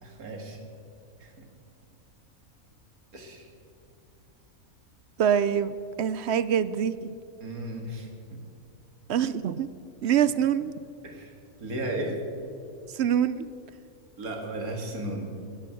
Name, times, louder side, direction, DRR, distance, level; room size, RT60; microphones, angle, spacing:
voice 1, 0.0-0.6 1.2-1.5 3.1-3.5 7.4-8.4 11.0-11.3 11.6-12.2 14.2-15.3, right 1 dB, 90° right, 3 dB, 2.5 m, -35 dB
voice 2, 5.2-7.1 9.1-9.7 10.0-10.7 12.9-13.5, right 9 dB, 65° right, 16 dB, 0.7 m, -25 dB
16.5 x 10.0 x 7.7 m, 2.5 s
omnidirectional pair, 1.5 m